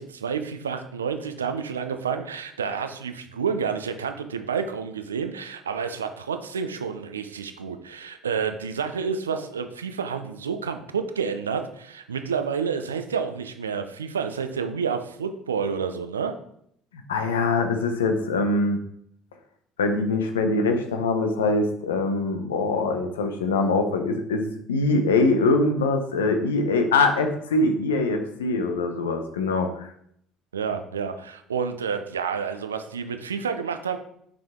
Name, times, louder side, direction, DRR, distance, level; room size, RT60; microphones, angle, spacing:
voice 1, 0.0-16.3 30.5-34.0, right 6 dB, 90° right, 8 dB, 0.5 m, -29 dB
voice 2, 16.9-18.8 19.8-29.9, left 3 dB, 85° left, 6 dB, 0.8 m, -23 dB
5.9 x 5.0 x 3.6 m, 0.69 s
hypercardioid pair, 60°, 0 cm